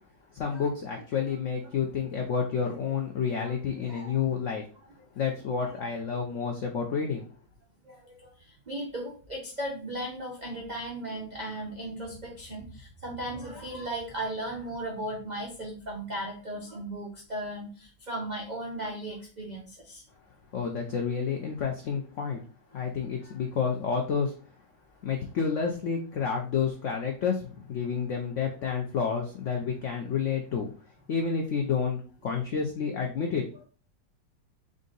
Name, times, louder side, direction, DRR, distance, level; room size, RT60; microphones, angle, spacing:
voice 1, 0.3-4.6 5.2-7.3 20.5-22.4 22.7-24.3 25.0-30.7 31.1-33.4, left 6 dB, 80° left, 2 dB, 0.6 m, -29 dB
voice 2, 3.8-4.1 5.6-5.7 7.8-8.3 8.7-20.0, right 1 dB, 75° right, -1 dB, 0.4 m, -36 dB
3.8 x 2.6 x 3.9 m, 0.38 s
omnidirectional pair, 2.0 m